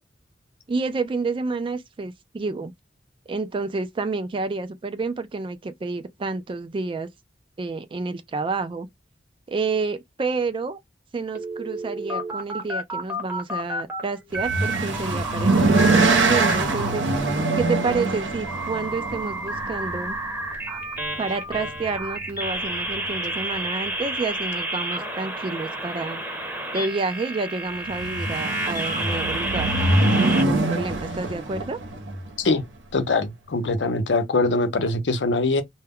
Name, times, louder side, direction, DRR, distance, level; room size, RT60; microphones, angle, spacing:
voice 1, 0.7-2.7 3.3-7.1 7.6-8.9 9.5-10.8 11.1-17.0 17.6-20.2 21.2-26.2 26.7-29.7 30.2-31.8, right 3 dB, 30° right, 0.3 m, -29 dB
sound 1, 11.3-14.0 14.3-16.9 17.3-30.4, right 1 dB, 10° right, 0.7 m, -30 dB
sound 2, 14.4-20.5 21.6-22.0 22.3-22.4 22.7-22.8 27.9-32.3, right 2 dB, 90° right, 0.8 m, -23 dB
voice 2, 32.9-35.6, left 3 dB, 75° left, 0.7 m, -22 dB
2.2 x 2.1 x 3.5 m
head